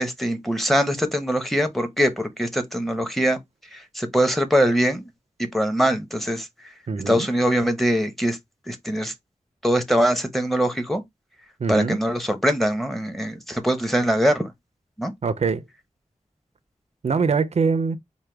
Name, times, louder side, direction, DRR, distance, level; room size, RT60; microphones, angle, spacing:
voice 1, 0.0-3.4 3.7-5.1 5.4-6.5 7.1-8.4 8.7-9.1 9.6-11.0 11.7-14.5 15.0-15.1, equal, ahead, 0.8 m, -22 dB
voice 2, 6.9-7.3 11.6-12.0 15.2-15.6 17.0-18.0, right 5 dB, 55° right, 0.5 m, -23 dB
4.5 x 2.2 x 3.3 m
wide cardioid pair, 80°, 13 cm